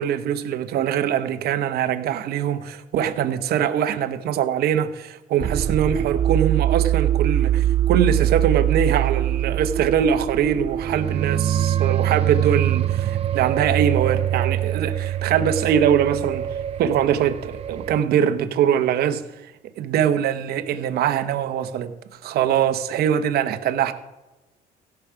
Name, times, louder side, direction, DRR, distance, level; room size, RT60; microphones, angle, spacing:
voice 1, 0.0-19.2 19.8-21.9 22.2-23.9, right 9 dB, 70° right, 0.9 m, -22 dB
sound 1, 5.4-18.0, right 11 dB, 35° right, 0.4 m, -23 dB
16.5 x 5.9 x 5.0 m
cardioid pair, 110°, 17 cm